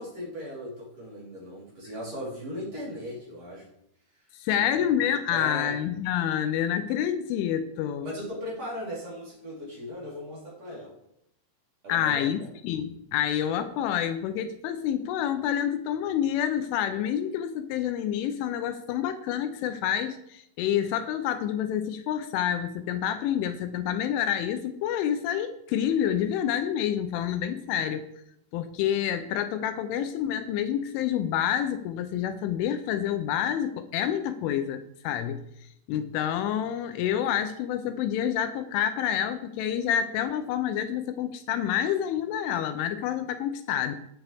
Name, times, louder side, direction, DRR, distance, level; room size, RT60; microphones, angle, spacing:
voice 1, 0.0-3.7 4.5-4.8 5.3-5.8 8.0-10.9 11.8-12.5, equal, 35° right, -6 dB, 4.7 m, -38 dB
voice 2, 4.4-8.1 11.9-28.1 28.5-35.4 35.9-44.0, left 10 dB, 80° left, 9 dB, 3.1 m, -28 dB
18.5 x 10.0 x 3.5 m, 0.77 s
omnidirectional pair, 5.7 m